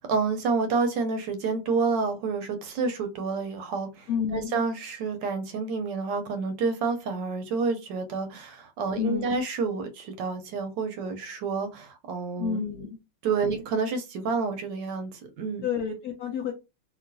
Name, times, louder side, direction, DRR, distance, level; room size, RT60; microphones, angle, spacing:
voice 1, 0.1-12.6 13.2-15.6, right 4 dB, 75° right, 1.2 m, -29 dB
voice 2, 4.1-4.6 8.9-9.4 12.4-13.0 15.6-16.5, left 7 dB, 80° left, 0.8 m, -30 dB
2.9 x 2.8 x 2.5 m
omnidirectional pair, 2.1 m